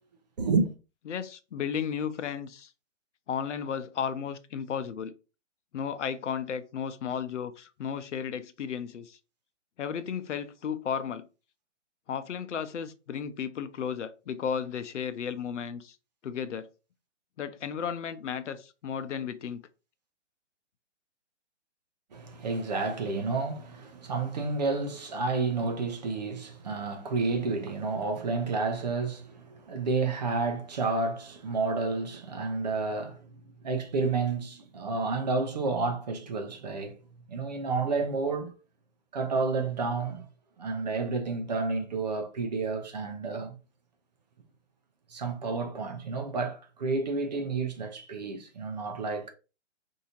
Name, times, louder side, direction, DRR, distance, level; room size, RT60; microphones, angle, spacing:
voice 1, 0.4-0.7 22.1-37.0 37.3-38.6 39.1-40.3 40.6-43.6 45.1-49.3, right 4 dB, 35° right, 0.7 m, -30 dB
voice 2, 1.1-2.7 3.3-5.1 5.7-9.2 9.8-11.3 12.1-16.0 16.2-16.7 17.4-19.6, left 7 dB, 80° left, 0.7 m, -34 dB
4.7 x 2.8 x 2.8 m
hypercardioid pair, 165°, 36 cm